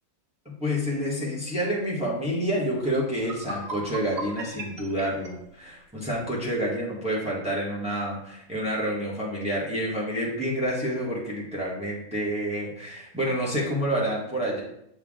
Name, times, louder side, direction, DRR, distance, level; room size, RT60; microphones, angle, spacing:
voice 1, 0.4-14.6, equal, 5° right, -5 dB, 1.4 m, -28 dB
sound 1, 3.1-6.2, right 3 dB, 65° right, 1.2 m, -38 dB
7.5 x 3.5 x 3.7 m, 0.77 s
omnidirectional pair, 1.6 m